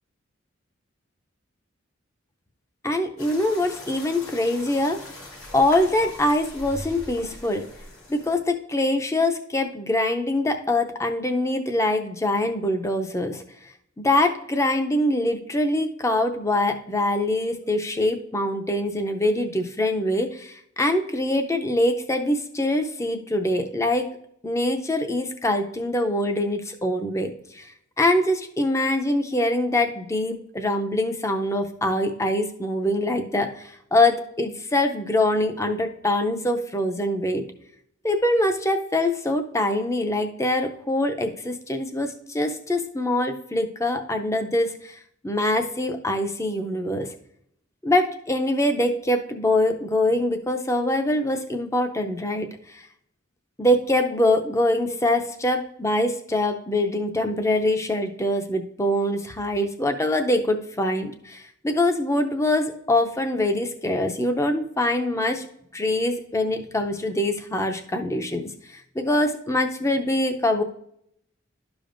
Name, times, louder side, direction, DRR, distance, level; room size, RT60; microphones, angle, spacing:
voice 1, 2.8-5.0 5.5-7.6 8.1-13.4 14.0-24.1 24.4-27.7 28.0-37.4 38.0-45.0 45.2-47.1 47.8-52.8 53.6-65.5 65.7-70.6, left 1 dB, 15° left, 6 dB, 0.5 m, -24 dB
sound 1, 3.2-8.4, left 1 dB, 90° left, 2.3 m, -41 dB
12.0 x 5.1 x 2.5 m, 0.72 s
head